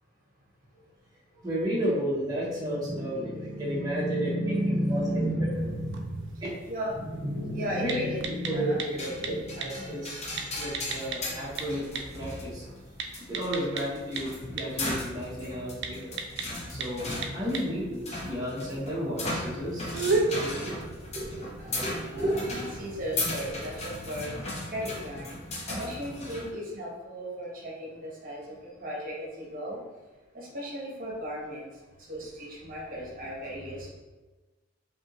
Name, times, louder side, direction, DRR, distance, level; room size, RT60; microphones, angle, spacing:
voice 1, 1.4-5.0 6.4-6.5 7.7-8.0 8.4-10.2 10.6-12.7 13.3-16.1 16.7-20.7 21.1-21.4 21.8-22.4, equal, 20° right, -7 dB, 0.8 m, -33 dB
voice 2, 2.4-10.0 10.3-10.6 21.6-24.3 24.7-25.3 25.7-29.8 30.3-31.7 32.1-33.9, equal, 45° right, -3 dB, 1.0 m, -34 dB
sound 1, 5.5-23.8, right 3 dB, 65° right, 0.5 m, -37 dB
sound 2, 9.0-26.5, left 2 dB, 35° left, 0.8 m, -37 dB
5.2 x 2.7 x 2.9 m, 1.2 s
head